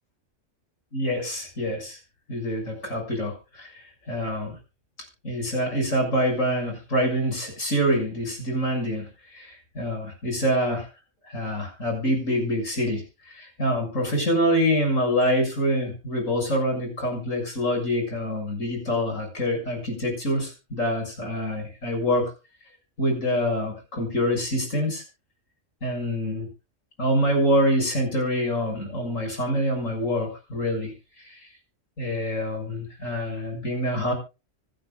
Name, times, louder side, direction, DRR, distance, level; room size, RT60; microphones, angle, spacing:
voice 1, 0.9-2.0 2.3-4.5 5.2-10.9 11.3-13.0 13.3-22.3 23.0-25.0 25.8-26.5 27.0-30.9 31.3-31.4 32.0-34.1, equal, 90° left, 2 dB, 7.2 m, -26 dB
25.5 x 9.5 x 2.4 m, 0.29 s
omnidirectional pair, 1.3 m